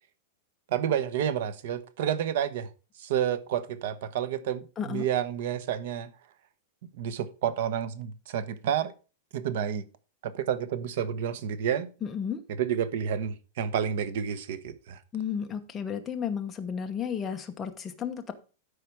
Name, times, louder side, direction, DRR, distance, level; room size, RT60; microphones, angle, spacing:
voice 1, 0.7-2.7 3.0-6.1 6.9-8.9 9.3-9.8 10.2-11.9 12.6-15.0, right 9 dB, 55° right, 1.0 m, -30 dB
voice 2, 4.8-5.1 12.0-12.4 15.1-18.3, left 7 dB, 15° left, 1.0 m, -33 dB
12.5 x 4.9 x 4.8 m
supercardioid pair, 170°, 0 cm